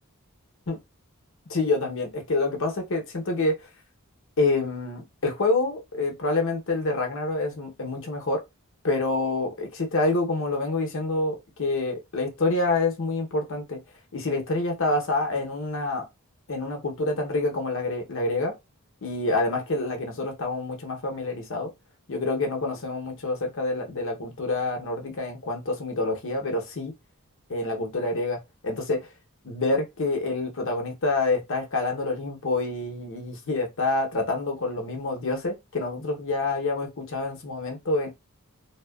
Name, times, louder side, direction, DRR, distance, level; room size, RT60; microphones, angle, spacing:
voice 1, 1.5-3.6 4.4-8.4 8.8-13.8 14.1-16.1 16.5-18.5 19.0-21.7 22.1-26.9 27.5-29.1 29.4-38.1, left 2 dB, 65° left, 0.8 m, -27 dB
2.8 x 2.2 x 2.3 m
head